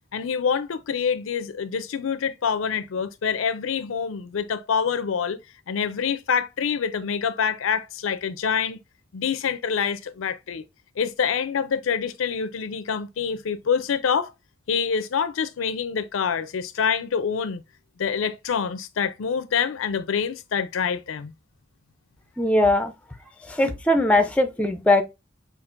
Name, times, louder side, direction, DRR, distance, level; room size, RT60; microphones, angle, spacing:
voice 1, 0.1-5.4 5.7-8.8 9.1-10.6 11.0-14.3 14.7-17.6 18.0-21.3, left 6 dB, 75° left, 0.4 m, -26 dB
voice 2, 22.4-22.9 23.5-25.0, left 1 dB, 5° left, 0.4 m, -20 dB
5.9 x 2.4 x 2.4 m
head